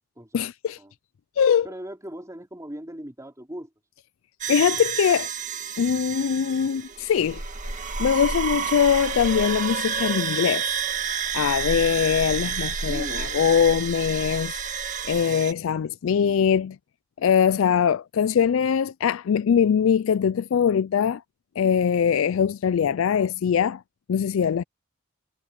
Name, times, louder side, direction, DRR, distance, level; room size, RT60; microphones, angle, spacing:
voice 1, 0.3-0.8 1.4-1.7 4.5-5.3 5.8-7.7 8.0-10.8 11.3-14.6 15.0-16.8 17.2-21.2 21.6-23.8 24.1-24.6, left 7 dB, 70° left, 0.4 m, -22 dB
voice 2, 1.6-3.7 8.3-8.4 8.7-8.9 12.9-14.0, equal, 15° right, 4.0 m, -39 dB
sound 1, 4.4-15.5, right 6 dB, 40° right, 1.7 m, -30 dB
head